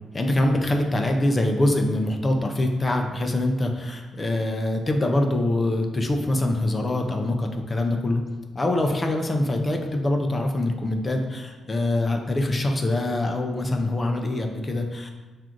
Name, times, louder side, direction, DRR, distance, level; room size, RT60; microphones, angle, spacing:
voice 1, 0.1-8.2 8.5-15.1, left 1 dB, 20° left, 3 dB, 0.3 m, -24 dB
5.8 x 2.4 x 2.5 m, 1.2 s
wide cardioid pair, 155°, 0 cm